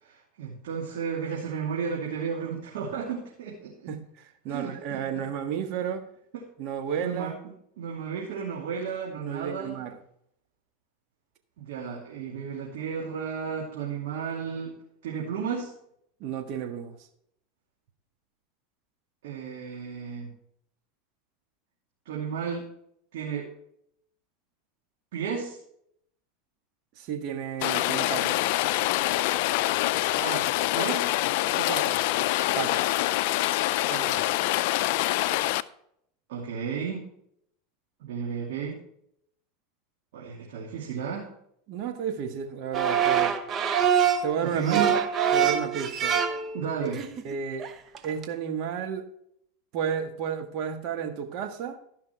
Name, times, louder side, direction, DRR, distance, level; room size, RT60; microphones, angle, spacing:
voice 1, 0.0-3.9 4.5-5.2 7.0-9.8 11.6-14.8 15.0-15.7 19.2-20.3 22.0-22.6 23.1-23.5 25.1-25.6 30.2-30.5 30.7-31.1 31.6-32.0 33.9-34.3 36.3-37.1 38.0-38.8 40.1-41.3 44.4-45.0 46.5-47.0, right 6 dB, 75° right, -4 dB, 2.6 m, -33 dB
voice 2, 3.9-6.1 6.6-7.3 9.2-10.0 16.2-17.0 27.0-28.4 32.5-32.8 41.7-43.4 44.2-44.8 45.3-46.2 46.8-46.9 47.2-47.6 48.0-49.0 49.7-51.8, right 7 dB, 55° right, 6 dB, 1.5 m, -32 dB
Rain, 27.6-35.6, left 16 dB, 65° left, 0.4 m, -25 dB
sound 1, 42.7-44.3 44.7-46.6 46.9-47.3 47.6-47.7 48.0-48.2, right 8 dB, 35° right, 1.0 m, -24 dB
13.5 x 5.8 x 4.5 m, 0.71 s
hypercardioid pair, 105°, 0 cm